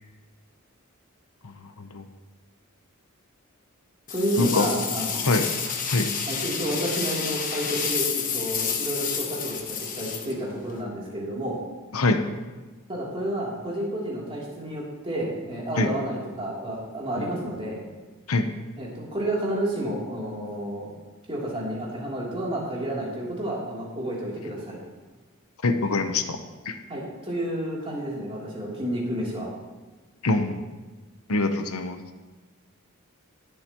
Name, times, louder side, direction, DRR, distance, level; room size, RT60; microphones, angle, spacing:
voice 1, 1.4-2.1 4.4-4.7 5.1-5.5 5.9-6.1 11.9-12.2 15.8-15.9 17.2-17.3 18.3-18.5 25.6-26.4 26.6-26.8 30.2-30.7 31.3-32.0, left 3 dB, 80° left, 7 dB, 0.9 m, -24 dB
sound 1, 4.1-10.8, left 6 dB, 40° left, 1.3 m, -30 dB
voice 2, 4.1-5.2 6.3-11.6 12.9-17.8 18.8-20.9 21.3-24.8 26.9-29.5, right 1 dB, 25° right, -5 dB, 3.2 m, -30 dB
20.0 x 8.1 x 3.0 m, 1.3 s
head